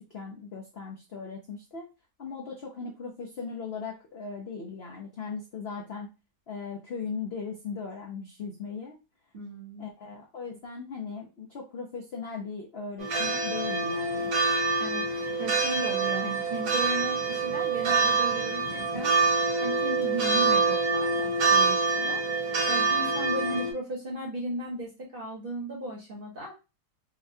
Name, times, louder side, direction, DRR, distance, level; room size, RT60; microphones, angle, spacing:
voice 1, 0.1-1.9 2.2-6.1 6.5-9.0 9.8-14.3, left 5 dB, 65° left, 0 dB, 0.6 m, -38 dB
voice 2, 9.3-9.9 14.8-19.1 19.6-26.5, right 1 dB, 40° right, -2 dB, 0.9 m, -36 dB
sound 1, 13.0-23.7, right 4 dB, 70° right, 1.3 m, -26 dB
3.9 x 2.2 x 2.6 m, 0.29 s
omnidirectional pair, 1.8 m